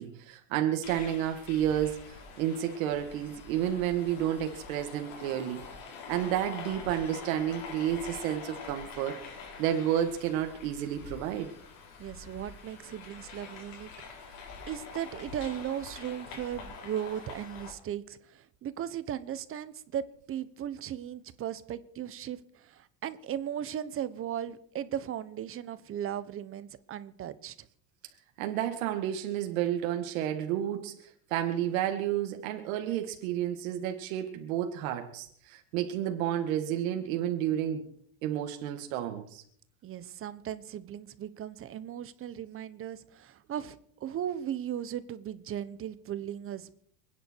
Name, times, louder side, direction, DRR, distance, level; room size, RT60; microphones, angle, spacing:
voice 1, 0.0-5.6 6.1-9.2 9.6-11.5 28.4-37.9 38.2-39.4, right 11 dB, 85° right, 5 dB, 2.0 m, -31 dB
sound 1, 0.8-17.7, left 5 dB, 75° left, 5.1 m, -45 dB
voice 2, 12.0-13.9 14.2-14.4 14.7-27.5 39.8-46.8, right 10 dB, 35° right, 15 dB, 1.1 m, -37 dB
27.5 x 10.0 x 4.6 m, 0.62 s
cardioid pair, 140°, 40 cm